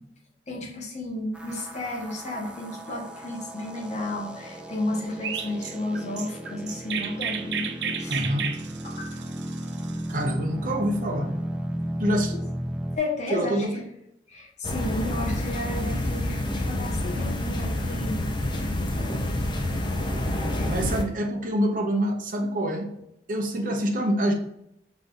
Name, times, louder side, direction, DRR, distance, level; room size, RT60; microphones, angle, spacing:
voice 1, 0.5-8.2 8.8-9.1 12.3-12.4 13.0-13.7 14.3-18.2 20.6-20.7, left 2 dB, 40° left, 0 dB, 1.1 m, -32 dB
sound 1, 1.3-13.0, right 1 dB, 5° right, 0.4 m, -35 dB
Chirp tweet, 5.2-10.4, right 7 dB, 70° right, 0.5 m, -33 dB
voice 2, 8.1-8.5 10.1-11.3 12.0-12.3 13.3-13.8 20.7-22.9 23.3-24.3, equal, 50° right, 3 dB, 0.8 m, -26 dB
sound 2, 14.6-21.0, left 1 dB, 25° left, 0.7 m, -28 dB
5.2 x 4.0 x 2.5 m, 0.80 s
head